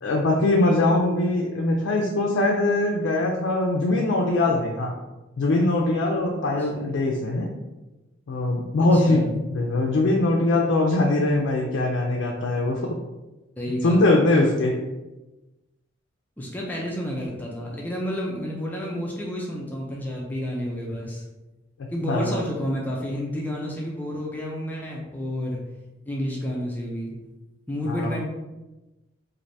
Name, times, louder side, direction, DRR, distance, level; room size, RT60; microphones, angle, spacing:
voice 1, 0.0-4.9 5.4-7.5 8.3-9.2 9.5-12.8 13.8-14.8 22.1-22.4 27.9-28.2, left 2 dB, 75° left, -1 dB, 0.4 m, -22 dB
voice 2, 8.9-9.3 13.6-14.0 16.4-21.2 21.9-25.6 26.1-27.2 27.7-28.2, equal, 10° left, -3 dB, 0.4 m, -30 dB
3.2 x 2.5 x 2.6 m, 1.1 s
head